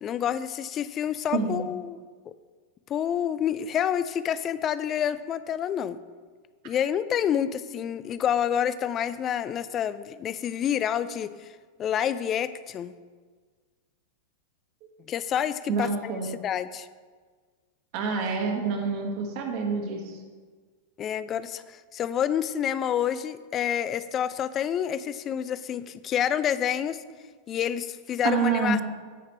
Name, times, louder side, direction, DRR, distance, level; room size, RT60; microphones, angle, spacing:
voice 1, 0.0-2.0 2.9-6.0 6.6-11.3 11.8-12.9 15.1-16.1 16.4-16.9 21.0-27.0 27.5-28.8, left 9 dB, 30° left, 14 dB, 0.5 m, -28 dB
voice 2, 15.7-16.3 17.9-20.2 28.2-28.8, right 5 dB, 45° right, 2 dB, 1.8 m, -27 dB
17.0 x 5.8 x 3.2 m, 1.5 s
figure-of-eight pair, 90°, 0 cm